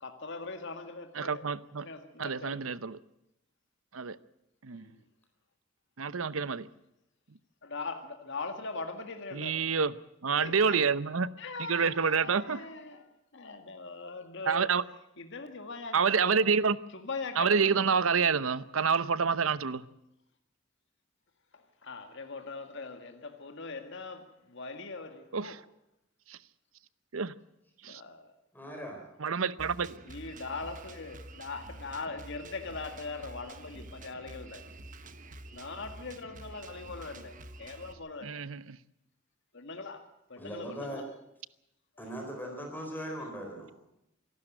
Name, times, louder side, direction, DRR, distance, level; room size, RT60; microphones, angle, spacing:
voice 1, 0.0-1.4 1.8-2.6 4.7-5.0 7.6-9.6 10.4-10.8 11.4-13.0 13.3-14.7 15.2-16.4 16.9-17.9 21.5-25.5 27.9-28.3 30.1-34.6 35.5-38.3 39.5-41.1, left 3 dB, 60° left, 1.9 m, -41 dB
voice 2, 1.1-1.9 2.2-3.0 3.9-4.2 4.6-4.9 6.0-6.7 9.3-9.9 10.2-11.3 11.6-12.6 14.5-14.8 15.9-16.8 17.4-19.8 25.3-25.6 26.3-26.4 27.1-27.3 27.8-28.0 29.2-30.0 38.2-38.8, right 5 dB, 85° right, 0.8 m, -28 dB
voice 3, 28.5-29.0 40.4-41.0 42.0-43.7, equal, 10° left, 4.2 m, -39 dB
Drum kit, 29.6-37.9, right 2 dB, 40° right, 1.2 m, -48 dB
26.0 x 12.5 x 9.0 m
head